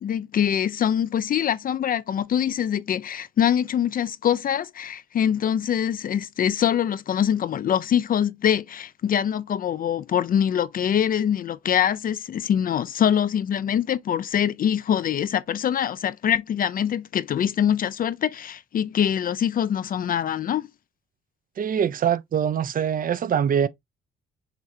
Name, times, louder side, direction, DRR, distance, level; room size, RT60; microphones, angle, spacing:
voice 1, 0.0-20.7, left 9 dB, 45° left, 0.4 m, -24 dB
voice 2, 21.6-23.7, right 8 dB, 45° right, 0.5 m, -23 dB
5.9 x 3.1 x 2.7 m
cardioid pair, 90°, 20 cm